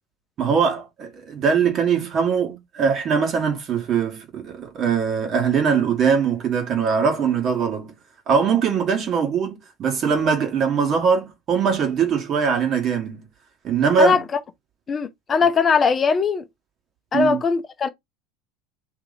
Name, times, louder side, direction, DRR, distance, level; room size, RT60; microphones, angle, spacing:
voice 1, 0.4-7.9 8.3-13.2 13.6-14.2 17.1-17.4, right 6 dB, 45° right, 1.4 m, -21 dB
voice 2, 14.9-16.4 17.1-17.9, left 5 dB, 30° left, 0.6 m, -20 dB
3.0 x 2.8 x 3.9 m
hypercardioid pair, 75°, 0 cm